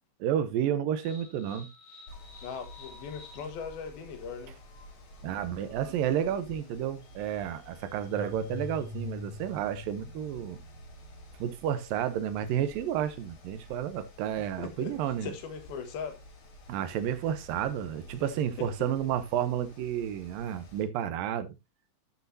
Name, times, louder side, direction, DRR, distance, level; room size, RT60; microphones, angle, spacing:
voice 1, 0.2-1.7 5.2-10.6 11.4-15.3 16.7-21.5, right 10 dB, 80° right, 2.5 m, -31 dB
sound 1, 1.0-11.6, left 4 dB, 55° left, 2.9 m, -47 dB
Mechanical fan, 2.1-20.8, left 1 dB, 40° left, 2.6 m, -51 dB
voice 2, 2.4-4.6 14.4-14.9 15.2-16.2 18.2-18.3 18.6-18.9, left 6 dB, 85° left, 3.4 m, -39 dB
12.0 x 6.5 x 2.7 m
omnidirectional pair, 4.2 m